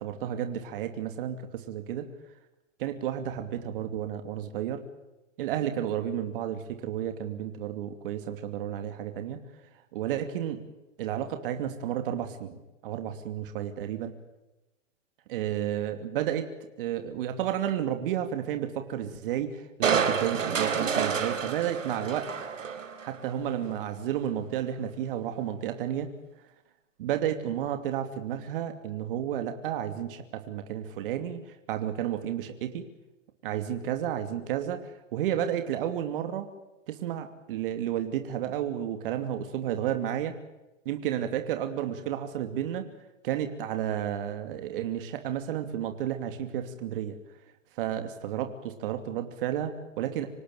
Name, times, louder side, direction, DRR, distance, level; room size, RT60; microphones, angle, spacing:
voice 1, 0.0-2.1 2.8-4.8 5.4-9.4 9.9-10.6 11.0-14.1 15.3-16.5 16.8-22.3 23.0-26.1 27.0-32.9 33.4-36.5 36.9-40.3 40.8-42.9 43.2-47.2 47.8-50.3, right 10 dB, 45° right, 7 dB, 2.8 m, -32 dB
Crushing, 19.8-23.2 23.6-23.7, right 6 dB, 85° right, 4.0 m, -29 dB
26.5 x 18.0 x 9.1 m, 1.0 s
hypercardioid pair, 140°, 37 cm